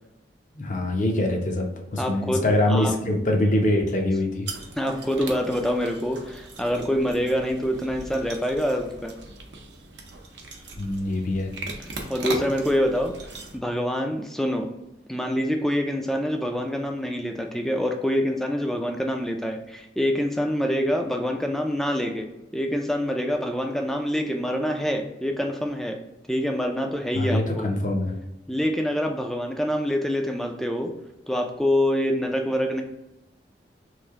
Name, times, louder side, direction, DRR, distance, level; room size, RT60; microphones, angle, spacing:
voice 1, 0.5-4.5 10.8-11.5 27.1-28.1, left 1 dB, 45° left, 2 dB, 0.6 m, -24 dB
voice 2, 2.0-2.4 2.7-3.2 4.8-9.1 11.8-13.1 13.5-14.7 15.1-22.3 22.5-26.0 26.3-27.7 28.5-30.9 31.3-32.8, equal, ahead, 3 dB, 0.3 m, -26 dB
sound 1, 4.5-13.6, right 3 dB, 80° right, 0.7 m, -39 dB
3.2 x 2.6 x 3.5 m, 0.92 s
head